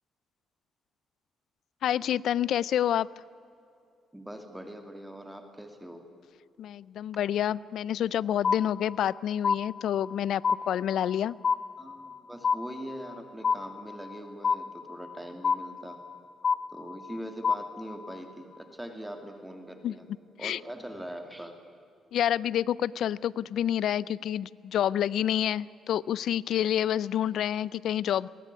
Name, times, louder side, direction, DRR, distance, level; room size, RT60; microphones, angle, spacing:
voice 1, 1.8-3.1 6.6-10.4 10.7-11.4 19.8-19.9 20.4-20.6 22.1-28.3, left 10 dB, 75° left, 22 dB, 0.5 m, -28 dB
voice 2, 4.1-6.0 11.8-16.0 16.7-20.0 20.4-21.6, equal, 5° right, 6 dB, 2.8 m, -42 dB
sound 1, 8.4-9.2 9.4-10.2 10.4-11.2 11.4-12.2 12.4-13.2 13.4-14.2 14.4-15.2 15.4-16.2 16.4-17.2 17.4-18.2, left 5 dB, 50° left, 0.9 m, -28 dB
22.5 x 18.0 x 9.6 m, 2.7 s
cardioid pair, 90°, 0 cm